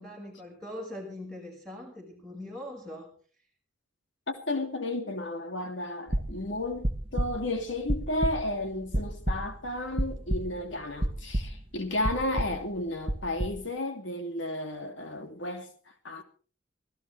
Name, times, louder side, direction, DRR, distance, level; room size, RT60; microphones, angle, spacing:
voice 1, 0.0-3.1, left 1 dB, 5° left, 5.5 m, -41 dB
voice 2, 4.3-15.7 16.0-16.2, left 1 dB, 75° left, 2.7 m, -33 dB
sound 1, 6.1-10.7 11.0-11.8 12.0-12.6 13.1-13.6, right 1 dB, 25° right, 1.4 m, -30 dB
25.0 x 15.5 x 3.3 m
head